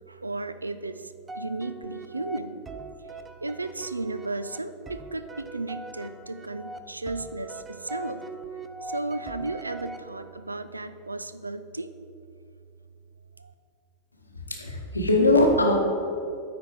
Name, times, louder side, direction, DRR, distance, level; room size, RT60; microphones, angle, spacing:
voice 1, 0.1-2.6 3.4-8.2 8.8-11.9 13.4-13.5, right 2 dB, 80° right, 12 dB, 0.3 m, -34 dB
sound 1, 1.3-10.6, right 2 dB, 15° right, 0.4 m, -41 dB
voice 2, 14.5-15.8, left 2 dB, 80° left, 1 dB, 1.0 m, -21 dB
9.3 x 4.2 x 4.6 m, 2.5 s
figure-of-eight pair, 90°, 0 cm